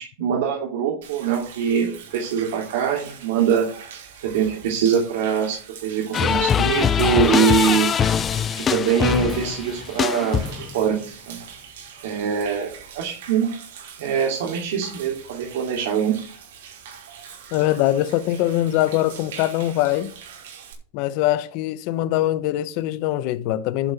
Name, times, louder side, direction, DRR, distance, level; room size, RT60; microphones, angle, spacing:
voice 1, 0.2-3.7 4.2-7.9 8.7-10.4 10.7-11.0 11.3-11.4 12.0-13.5 14.0-16.1, right 7 dB, 70° right, 2.9 m, -23 dB
Human voice / Rain / Stream, 1.0-20.7, right 7 dB, 85° right, 5.0 m, -42 dB
sound 1, 6.1-10.8, left 8 dB, 20° left, 0.4 m, -22 dB
voice 2, 17.5-20.1 20.9-23.9, left 14 dB, 45° left, 0.8 m, -22 dB
11.0 x 5.7 x 6.8 m
supercardioid pair, 165°, 0 cm